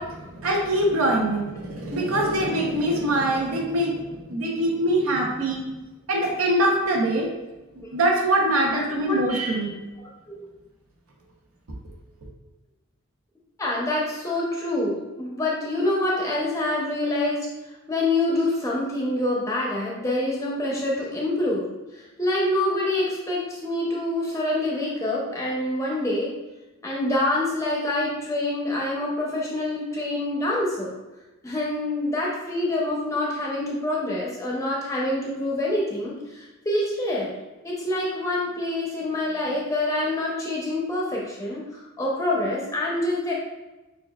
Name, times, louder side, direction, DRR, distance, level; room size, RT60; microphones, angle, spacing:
voice 1, 0.0-5.6 6.1-7.3 7.9-9.8, right 1 dB, 85° right, 0 dB, 0.8 m, -23 dB
voice 2, 8.8-9.2 10.0-10.5 13.6-17.5 17.9-21.7 21.9-26.3 26.8-30.9 31.4-37.3 37.6-43.3, left 1 dB, 15° left, -4 dB, 0.6 m, -26 dB
6.6 x 2.3 x 2.3 m, 1.1 s
head